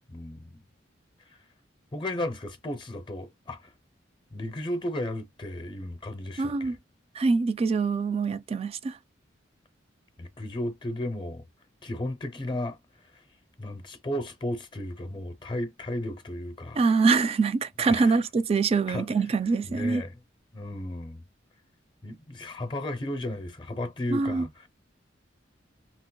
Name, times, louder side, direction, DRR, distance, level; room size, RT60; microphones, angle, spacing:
voice 1, 0.1-0.5 1.9-3.7 4.3-6.8 10.2-11.4 11.8-12.8 13.1-13.2 13.6-16.8 17.8-18.2 18.9-19.1 19.7-20.2 20.5-21.2 22.0-24.7, left 1 dB, 25° left, 0.5 m, -34 dB
voice 2, 6.4-6.8 7.2-9.0 16.8-20.0 24.1-24.5, right 4 dB, 30° right, 0.3 m, -24 dB
2.9 x 2.8 x 3.0 m
head